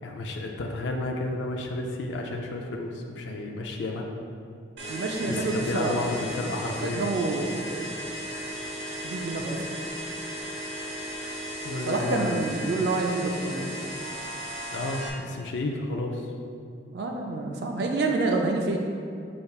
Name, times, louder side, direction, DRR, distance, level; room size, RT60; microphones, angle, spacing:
voice 1, 0.0-4.1 5.3-7.0 11.6-12.4 14.7-16.3, left 2 dB, 75° left, 1 dB, 0.4 m, -32 dB
sound 1, 4.8-15.1, equal, 80° right, 0.8 m, -36 dB
voice 2, 4.9-6.0 6.8-7.8 9.0-9.8 11.9-13.7 16.9-18.8, right 3 dB, 55° right, 1 dB, 0.3 m, -28 dB
6.5 x 3.4 x 2.3 m, 2.4 s
head